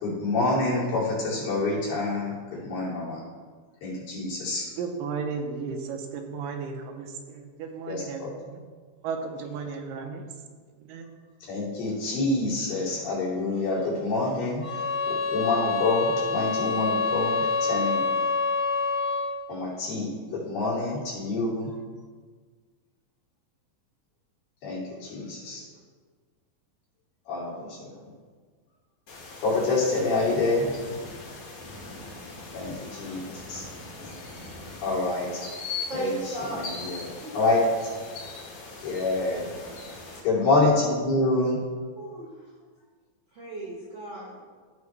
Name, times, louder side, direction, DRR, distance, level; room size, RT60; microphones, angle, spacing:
voice 1, 0.0-3.2 3.8-4.6 7.9-8.3 11.5-18.0 19.5-21.7 24.6-25.6 27.3-27.8 29.4-30.7 32.5-33.6 34.8-35.3 35.9-37.6 38.8-39.5 40.2-41.6, left 2 dB, 85° left, -7 dB, 4.3 m, -27 dB
voice 2, 4.8-8.6 9.0-10.2 10.8-11.1, right 5 dB, 85° right, 4 dB, 2.4 m, -34 dB
sound 1, 14.6-19.4, left 4 dB, 35° left, 1.1 m, -26 dB
sound 2, 29.1-40.2, left 3 dB, 65° left, 2.9 m, -40 dB
voice 3, 35.9-36.6 37.2-37.3 39.2-39.5 41.9-42.2 43.3-44.4, right 2 dB, 60° right, -5 dB, 1.2 m, -35 dB
14.0 x 4.7 x 3.2 m, 1.5 s
omnidirectional pair, 3.9 m